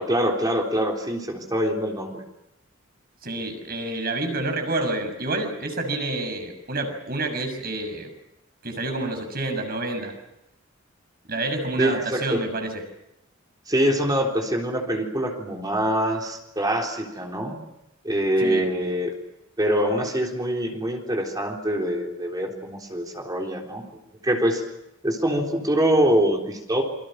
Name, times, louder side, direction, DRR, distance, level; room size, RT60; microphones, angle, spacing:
voice 1, 0.0-2.2 11.8-12.4 13.7-17.6 18.0-19.1 19.6-23.8 24.2-24.6 25.0-26.8, equal, 20° right, 1 dB, 3.8 m, -24 dB
voice 2, 3.2-8.1 8.6-10.1 11.3-12.8 18.4-18.6, right 2 dB, 50° right, 5 dB, 6.5 m, -28 dB
28.5 x 24.0 x 6.4 m, 0.86 s
head